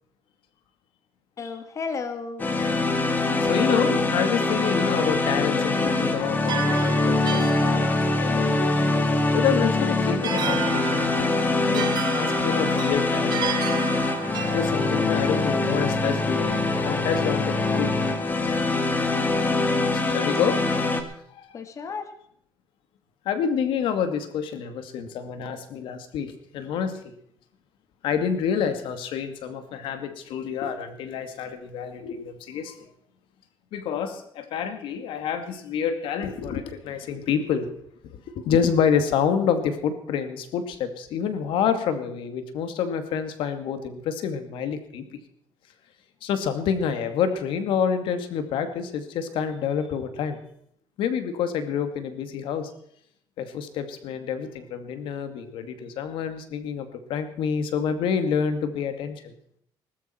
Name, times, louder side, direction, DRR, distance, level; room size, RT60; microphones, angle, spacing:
voice 1, 1.4-2.5 14.4-15.1 21.5-22.1, left 5 dB, 35° left, 8 dB, 2.0 m, -34 dB
sound 1, 2.4-21.0, left 2 dB, 20° left, 2.2 m, -23 dB
voice 2, 3.5-8.5 9.3-11.3 11.7-13.4 14.5-16.6 16.8-17.9 19.4-20.6 21.3-21.5 23.3-27.0 28.0-32.8 33.7-37.8 38.4-45.1 46.2-50.4 51.0-52.7 53.4-59.3, left 7 dB, 75° left, 9 dB, 2.3 m, -28 dB
sound 2, 6.5-14.8, right 8 dB, 50° right, 1.5 m, -34 dB
19.5 x 13.5 x 4.5 m, 0.67 s
cardioid pair, 130°, 9 cm